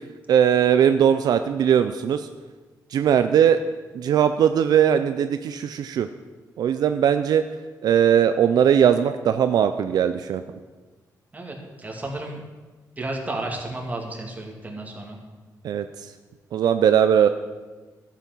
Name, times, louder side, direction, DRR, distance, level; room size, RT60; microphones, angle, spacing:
voice 1, 0.3-2.2 2.9-3.6 3.9-6.1 6.6-7.4 7.8-10.4 15.6-15.8 16.5-17.3, right 9 dB, 75° right, 9 dB, 0.5 m, -19 dB
voice 2, 11.3-12.4 13.0-15.2, right 2 dB, 25° right, -1 dB, 2.5 m, -32 dB
12.0 x 8.2 x 6.2 m, 1.3 s
cardioid pair, 100°, 7 cm